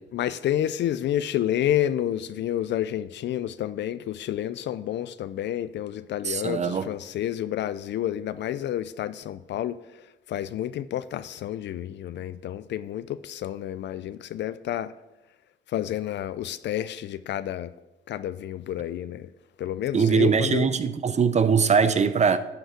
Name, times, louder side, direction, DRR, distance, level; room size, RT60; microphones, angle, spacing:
voice 1, 0.1-9.8 10.3-14.9 15.7-17.7 18.1-19.3 19.6-20.7, left 11 dB, 65° left, 0.4 m, -29 dB
voice 2, 6.2-6.9 19.9-22.4, right 6 dB, 35° right, 0.6 m, -21 dB
11.5 x 5.3 x 5.0 m
cardioid pair, 90°, 20 cm